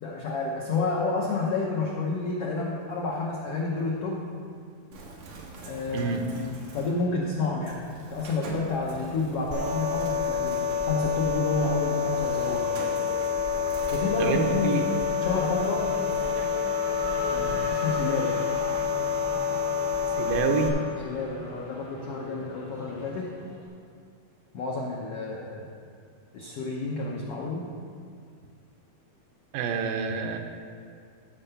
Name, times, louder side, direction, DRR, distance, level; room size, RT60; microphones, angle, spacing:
voice 1, 0.0-4.3 5.6-12.7 13.9-14.9 15.2-15.9 17.3-18.4 21.0-23.3 24.5-25.8 26.3-27.7, left 3 dB, 80° left, -2 dB, 1.3 m, -30 dB
Bird, 4.9-16.4, right 3 dB, 60° right, 2.3 m, -45 dB
Race car auto racing / Accelerating revving vroom, 8.8-9.7 10.0-23.7, left 1 dB, 55° left, 3.6 m, -40 dB
sound 1, 9.5-20.7, left 6 dB, 35° right, 0.8 m, -28 dB
voice 2, 14.2-14.9 20.2-20.8 29.5-30.4, right 6 dB, 85° right, 4 dB, 2.6 m, -27 dB
13.5 x 4.6 x 6.9 m, 2.2 s
omnidirectional pair, 4.1 m